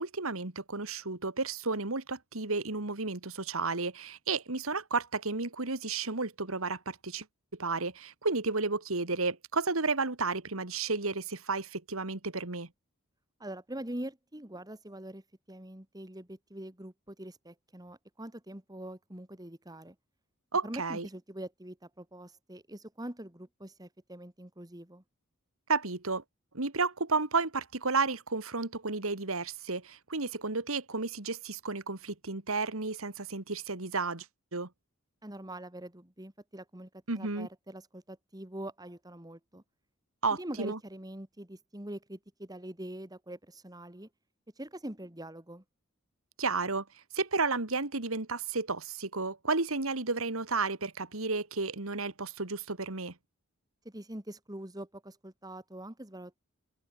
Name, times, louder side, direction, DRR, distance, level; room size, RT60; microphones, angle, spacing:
voice 1, 0.0-7.3 7.6-12.7 20.5-21.1 25.7-26.2 26.5-34.3 34.5-34.7 37.1-37.5 40.2-40.8 46.4-46.8 47.1-53.1, right 3 dB, 80° right, 2.4 m, -32 dB
voice 2, 13.4-20.0 20.6-25.0 35.2-36.9 37.2-39.6 40.4-44.1 44.6-45.6 53.8-56.4, right 1 dB, 20° right, 2.2 m, -44 dB
open air
head